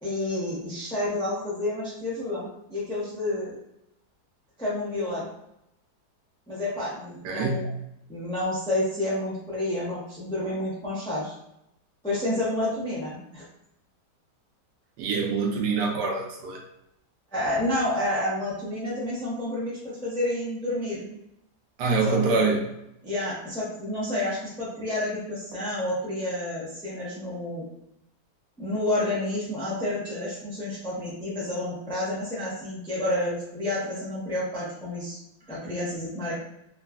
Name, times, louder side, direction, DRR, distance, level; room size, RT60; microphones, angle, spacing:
voice 1, 0.0-3.6 4.6-5.2 6.5-7.7 8.1-11.3 12.0-13.4 17.3-21.0 22.0-22.5 23.0-27.6 28.6-35.2 35.5-36.3, left 1 dB, 10° left, -7 dB, 0.3 m, -29 dB
voice 2, 7.2-7.6 15.0-16.6 21.8-22.7, right 4 dB, 85° right, 0 dB, 1.2 m, -25 dB
3.0 x 2.4 x 2.3 m, 0.82 s
omnidirectional pair, 1.8 m